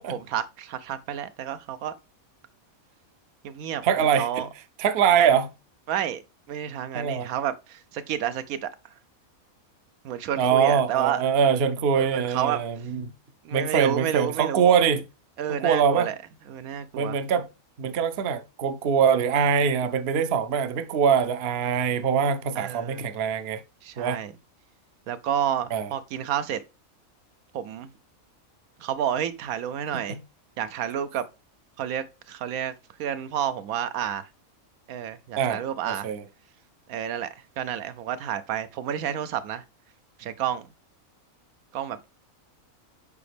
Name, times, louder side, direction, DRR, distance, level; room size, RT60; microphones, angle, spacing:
voice 1, 0.0-1.9 3.4-4.5 5.9-6.2 6.5-8.7 10.0-11.3 11.9-12.9 13.4-14.7 15.4-16.2 16.5-17.2 22.6-23.1 23.8-24.3 25.1-26.6 27.5-27.9 28.8-30.2 30.6-31.2 31.8-32.7 33.0-34.3 34.9-36.1 36.9-37.3 37.6-39.6 40.2-40.7 41.7-42.1, right 9 dB, 80° right, 1.0 m, -30 dB
voice 2, 3.8-4.4 4.8-5.5 6.9-7.3 10.4-13.0 13.5-15.0 15.6-16.1 16.9-17.5 17.8-23.6 24.0-24.2 25.7-25.9 35.4-36.2, right 7 dB, 55° right, 0.7 m, -23 dB
6.9 x 4.9 x 3.3 m
omnidirectional pair, 1.5 m